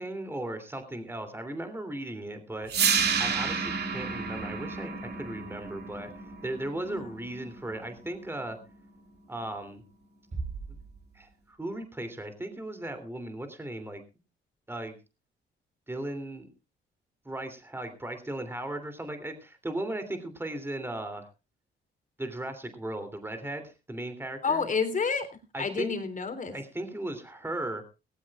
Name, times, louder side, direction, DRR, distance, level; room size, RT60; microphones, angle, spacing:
voice 1, 0.0-2.7 3.2-6.1 6.4-8.6 9.3-9.8 11.1-14.0 14.7-14.9 15.9-16.5 17.2-21.3 22.2-24.6 25.5-25.9 26.5-27.8, right 1 dB, 10° right, 7 dB, 3.0 m, -36 dB
sound 1, 2.7-8.7, right 6 dB, 55° right, 2.7 m, -31 dB
voice 2, 6.9-7.2 24.4-25.3 25.6-26.5, left 5 dB, 40° left, 8 dB, 3.5 m, -29 dB
Bass drum, 10.3-11.7, right 4 dB, 35° right, 7.5 m, -39 dB
18.5 x 17.0 x 2.4 m, 0.30 s
cardioid pair, 90°, 20 cm